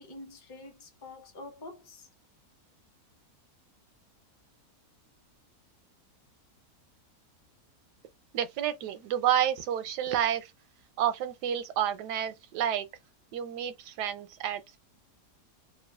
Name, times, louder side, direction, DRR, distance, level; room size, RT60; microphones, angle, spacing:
voice 1, 0.0-2.1, left 2 dB, 25° left, 0.5 m, -46 dB
voice 2, 8.3-10.5 11.0-12.9 13.3-14.8, right 10 dB, 85° right, 1.2 m, -30 dB
3.0 x 2.2 x 2.3 m
omnidirectional pair, 1.7 m